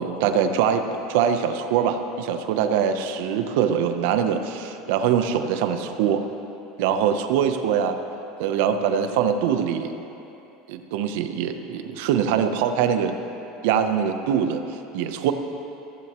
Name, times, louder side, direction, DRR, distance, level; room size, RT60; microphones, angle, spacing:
voice 1, 0.0-6.2 6.8-8.0 8.4-9.9 10.7-13.2 13.6-14.6 14.9-15.3, right 8 dB, 60° right, 8 dB, 0.7 m, -23 dB
15.5 x 14.5 x 3.0 m, 3.0 s
cardioid pair, 175°, 0 cm